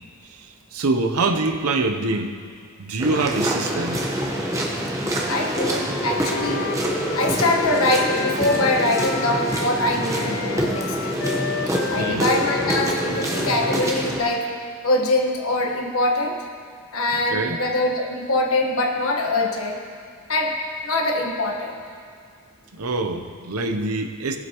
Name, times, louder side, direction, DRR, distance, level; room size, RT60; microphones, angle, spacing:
voice 1, 0.3-2.4 2.8-4.0 11.9-12.3 17.3-17.6 22.8-24.4, right 3 dB, 85° right, 6 dB, 0.8 m, -25 dB
sound 1, 3.0-14.2, right 1 dB, 15° right, 1.1 m, -26 dB
Female singing, 3.1-8.3, right 2 dB, 45° right, 1.7 m, -43 dB
voice 2, 5.3-6.6 7.1-11.2 11.9-14.5 14.8-16.4 16.9-19.8 20.3-20.6 20.8-21.8, left 2 dB, 75° left, 1 dB, 1.3 m, -23 dB
Wind instrument woodwind instrument, 5.7-9.8 10.1-14.3, left 5 dB, 55° left, 0.3 m, -31 dB
19.0 x 7.7 x 3.0 m, 2.2 s
head